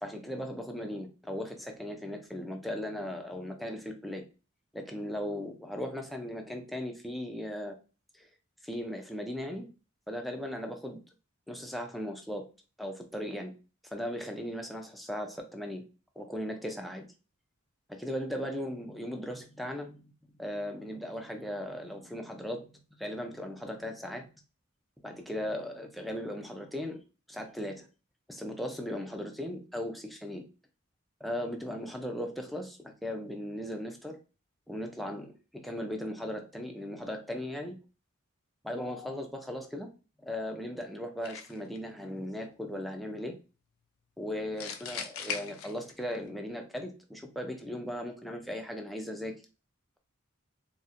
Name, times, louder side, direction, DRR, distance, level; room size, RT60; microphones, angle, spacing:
voice 1, 0.0-4.2 4.7-7.8 8.1-8.3 8.6-9.7 10.1-11.0 11.5-12.5 12.8-13.5 13.9-15.8 16.2-17.0 17.9-24.3 25.0-27.0 27.3-27.9 28.3-30.5 31.2-34.2 34.7-37.8 38.6-39.9 40.2-43.4 44.2-49.3, equal, ahead, 3 dB, 0.4 m, -37 dB
sound 1, 41.2-41.8 44.6-46.2, left 6 dB, 85° left, 0.4 m, -38 dB
4.1 x 2.1 x 2.5 m, 0.34 s
head